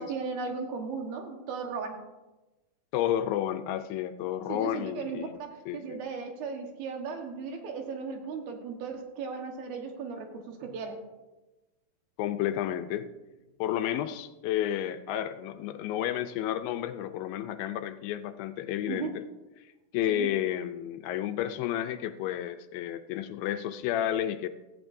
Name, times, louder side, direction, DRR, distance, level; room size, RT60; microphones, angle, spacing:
voice 1, 0.0-2.0 4.5-11.0 18.9-19.2 20.1-20.3, right 5 dB, 80° right, 3 dB, 3.2 m, -36 dB
voice 2, 2.9-5.4 5.7-6.0 12.2-13.1 13.6-19.2 19.6-24.5, left 11 dB, 80° left, 9 dB, 2.3 m, -31 dB
17.5 x 14.5 x 2.7 m, 1.1 s
omnidirectional pair, 4.3 m